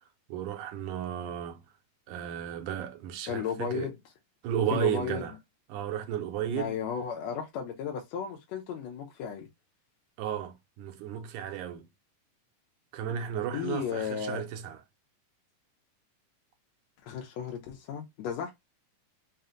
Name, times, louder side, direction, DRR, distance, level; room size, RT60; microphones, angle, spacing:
voice 1, 0.3-1.6 2.1-3.9 4.4-5.3 5.7-6.7 10.2-11.9 12.9-14.8, right 9 dB, 80° right, 2.0 m, -33 dB
voice 2, 3.3-4.0 4.7-5.3 6.5-9.5 13.5-14.4 17.0-18.5, left 8 dB, 70° left, 1.7 m, -34 dB
5.7 x 2.1 x 3.8 m
omnidirectional pair, 3.7 m